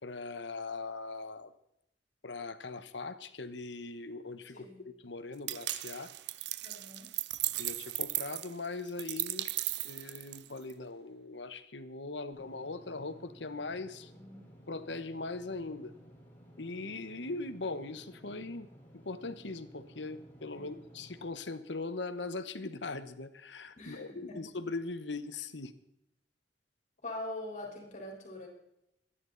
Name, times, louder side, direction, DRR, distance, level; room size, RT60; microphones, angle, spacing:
voice 1, 0.0-1.5 2.2-6.1 7.6-9.5 9.8-14.1 14.7-15.9 16.6-18.7 19.0-25.7, left 3 dB, 80° left, 10 dB, 1.2 m, -40 dB
voice 2, 4.5-4.9 6.6-7.1 14.1-14.3 20.5-20.7 23.8-24.4 27.0-28.5, left 1 dB, 45° left, 0 dB, 4.1 m, -43 dB
sound 1, 5.5-10.7, right 17 dB, 70° right, 0.5 m, -36 dB
Engine / Mechanisms, 12.3-21.3, equal, 10° left, 4.5 m, -56 dB
26.0 x 10.5 x 4.1 m, 0.82 s
head